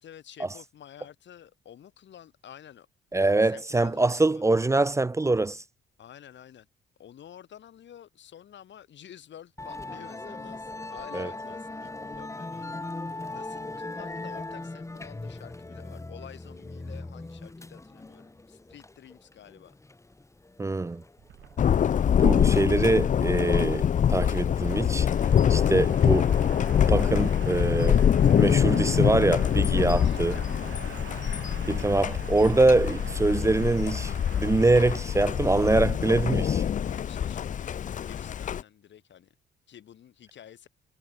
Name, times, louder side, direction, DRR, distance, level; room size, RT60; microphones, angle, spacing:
voice 1, 0.0-2.9 3.2-4.4 6.0-6.7 7.0-19.8 30.0-30.7 31.0-31.5 36.8-39.3 39.7-40.7, left 10 dB, 65° left, 8.0 m, -49 dB
voice 2, 3.1-5.6 11.1-11.3 20.6-21.0 22.2-25.1 25.5-26.3 26.9-28.1 28.4-30.4 31.7-36.6, right 2 dB, 15° right, 0.4 m, -24 dB
Musical instrument, 9.6-25.1, left 2 dB, 15° left, 2.4 m, -40 dB
sound 1, 21.2-37.7, right 11 dB, 70° right, 6.1 m, -45 dB
Thunder, 21.6-38.6, left 9 dB, 40° left, 0.5 m, -24 dB
cardioid pair, 90°, 20 cm